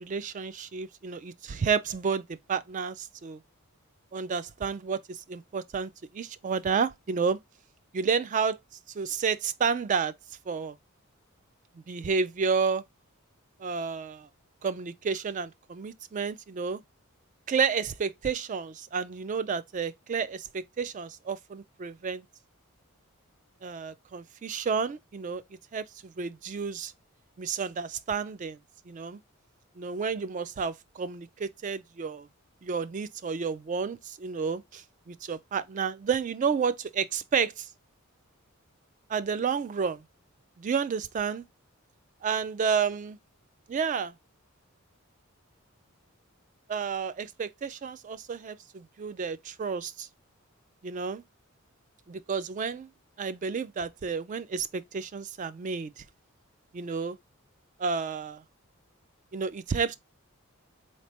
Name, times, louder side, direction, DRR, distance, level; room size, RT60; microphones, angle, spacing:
voice 1, 0.0-3.4 4.1-7.4 7.9-8.6 8.9-10.1 10.5-10.8 11.9-12.8 13.6-14.3 14.6-16.8 17.5-22.3 23.6-25.4 25.7-26.9 27.4-28.6 28.9-29.2 29.8-32.3 32.6-37.7 39.1-40.0 40.6-41.4 42.2-43.2 43.7-44.1 46.7-50.1 50.8-51.2 52.1-52.9 53.2-56.0 56.7-57.2 57.8-58.4 59.3-59.9, right 5 dB, 35° right, 0.3 m, -31 dB
4.1 x 3.2 x 2.8 m
head